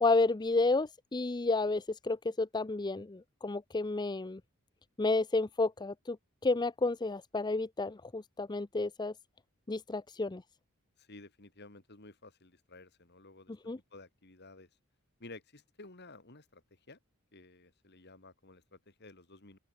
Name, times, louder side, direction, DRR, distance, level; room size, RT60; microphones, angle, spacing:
voice 1, 0.0-4.4 5.0-6.2 6.4-9.1 9.7-10.4 13.7-13.8, left 3 dB, 20° left, 0.5 m, -31 dB
voice 2, 11.0-13.5 13.9-14.7 15.2-17.0 17.3-19.6, left 2 dB, 50° left, 3.0 m, -53 dB
open air
head